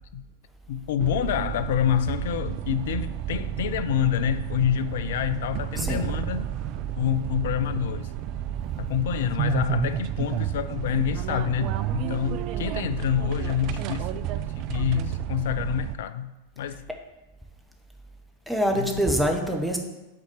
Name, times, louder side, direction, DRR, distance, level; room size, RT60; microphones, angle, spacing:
voice 1, 0.7-6.5 7.0-8.1 8.8-14.3 14.6-16.9 18.7-19.0, left 9 dB, 55° left, 0.4 m, -27 dB
sound 1, 1.0-15.9, right 11 dB, 40° right, 0.3 m, -31 dB
voice 2, 5.8-6.1 13.7-13.8 18.5-19.8, equal, ahead, 1.0 m, -25 dB
6.0 x 4.1 x 6.4 m
figure-of-eight pair, 90°, 0 cm